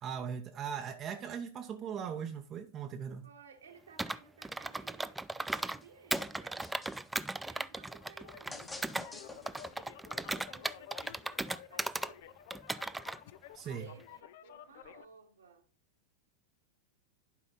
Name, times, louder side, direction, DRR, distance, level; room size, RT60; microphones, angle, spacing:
voice 1, 0.0-3.2 13.5-13.9, right 7 dB, 30° right, 0.8 m, -39 dB
voice 2, 3.2-6.7 7.4-11.2 11.7-12.4 13.6-15.6, right 5 dB, 70° right, 1.6 m, -58 dB
Computer keyboard, 4.0-5.8 6.1-9.1 9.5-12.1 12.5-13.2, right 2 dB, 5° right, 0.3 m, -37 dB
sound 1, 5.5-5.9 6.1-7.2 8.5-9.9, left 2 dB, 10° left, 1.1 m, -47 dB
sound 2, 8.0-15.0, left 11 dB, 50° left, 0.5 m, -52 dB
11.5 x 5.1 x 3.8 m
figure-of-eight pair, 90°, 0 cm